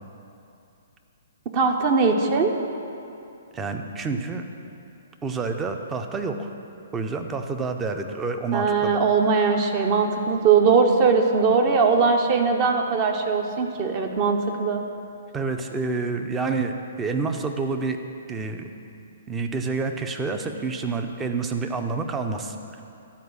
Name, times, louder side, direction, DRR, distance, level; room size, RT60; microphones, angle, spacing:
voice 1, 1.5-2.5 8.5-14.8, right 5 dB, 35° right, 4 dB, 0.9 m, -20 dB
voice 2, 3.5-4.5 5.2-6.5 6.9-9.0 15.3-16.7 17.0-18.0 18.3-18.7 19.3-22.8, right 4 dB, 15° right, 6 dB, 0.6 m, -28 dB
11.5 x 4.7 x 6.3 m, 2.7 s
figure-of-eight pair, 125°, 0 cm